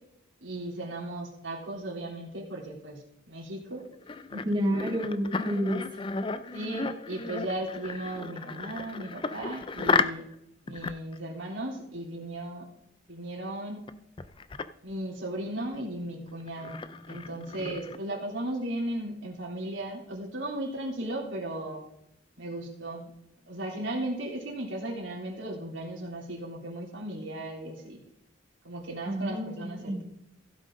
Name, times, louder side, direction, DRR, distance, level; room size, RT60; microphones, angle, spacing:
voice 1, 0.4-3.9 4.3-4.5 6.5-10.2 10.7-12.7 13.1-13.9 14.8-21.8 22.4-23.1 23.5-28.0 28.6-30.0, right 1 dB, 75° right, -2 dB, 3.5 m, -36 dB
sound 1, 3.7-10.3 10.7-11.2 13.9-14.0 14.2-14.6 15.7-15.8 16.3-18.0, left 4 dB, 25° left, 0.4 m, -33 dB
voice 2, 4.4-5.8 29.1-30.0, equal, 25° right, -1 dB, 2.2 m, -29 dB
16.0 x 7.4 x 3.8 m, 0.80 s
head